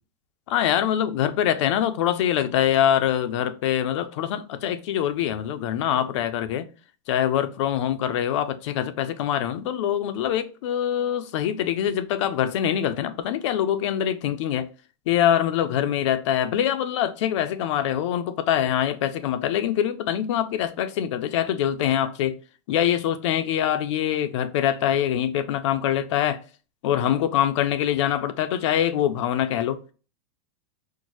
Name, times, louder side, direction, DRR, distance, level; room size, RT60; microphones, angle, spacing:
voice 1, 0.5-6.7 7.1-14.7 15.1-22.3 22.7-26.4 26.8-29.8, left 10 dB, 65° left, 0.5 m, -24 dB
4.4 x 2.1 x 2.9 m
supercardioid pair, 170°, 17 cm